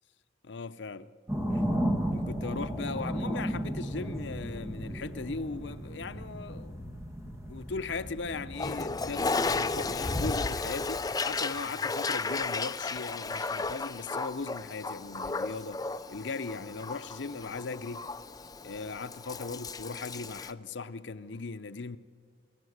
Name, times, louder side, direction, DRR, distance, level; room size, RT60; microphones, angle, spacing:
voice 1, 0.4-1.1 1.5-1.6 2.1-6.8 7.2-18.1 18.6-22.0, left 4 dB, 70° left, 0.7 m, -38 dB
sound 1, 1.3-10.6, equal, 15° right, 2.0 m, -35 dB
Toilet flush, 8.5-20.5, left 3 dB, 20° left, 0.5 m, -34 dB
29.5 x 18.0 x 8.0 m
head